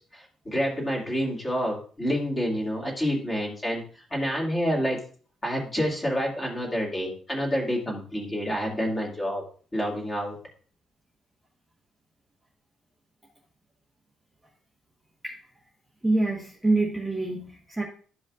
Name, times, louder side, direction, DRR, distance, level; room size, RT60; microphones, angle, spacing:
voice 1, 0.1-5.0 5.4-9.4 9.7-10.4, equal, 15° left, -3 dB, 2.2 m, -28 dB
voice 2, 16.0-17.8, right 2 dB, 5° right, -3 dB, 1.1 m, -26 dB
13.0 x 5.2 x 2.4 m, 0.43 s
cardioid pair, 175°, 0 cm